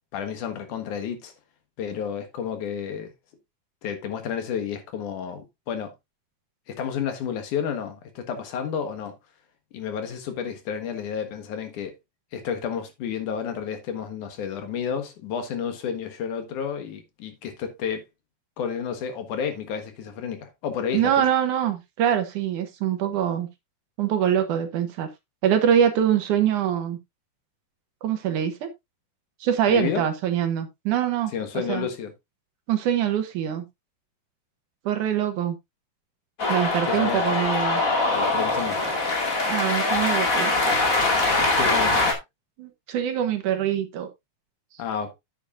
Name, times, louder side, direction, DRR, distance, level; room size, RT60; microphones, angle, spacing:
voice 1, 0.1-1.3 1.8-3.1 3.8-5.9 6.7-9.2 9.7-11.9 12.3-18.0 18.6-21.3 29.7-30.1 31.3-32.1 36.8-37.4 38.1-38.9 41.6-42.1 44.8-45.1, left 7 dB, 70° left, 2.8 m, -31 dB
voice 2, 20.9-23.5 24.0-25.1 25.4-27.0 28.0-28.7 29.4-31.3 31.7-31.9 32.7-33.7 34.9-35.6 36.5-37.8 39.5-40.8 42.6-44.1, right 9 dB, 75° right, 2.6 m, -24 dB
Cheering, 36.4-42.1, left 2 dB, 30° left, 2.1 m, -23 dB
10.0 x 8.1 x 2.5 m
omnidirectional pair, 3.8 m